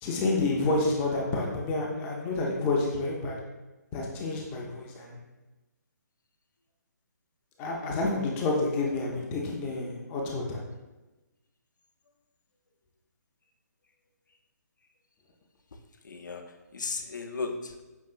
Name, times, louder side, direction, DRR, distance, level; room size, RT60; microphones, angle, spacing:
voice 1, 0.0-3.4 3.9-5.2 7.6-10.6, left 2 dB, 15° left, -2 dB, 0.4 m, -29 dB
voice 2, 16.0-17.8, left 4 dB, 80° left, 4 dB, 0.5 m, -36 dB
5.4 x 2.9 x 2.4 m, 1.1 s
hypercardioid pair, 150°, 10 cm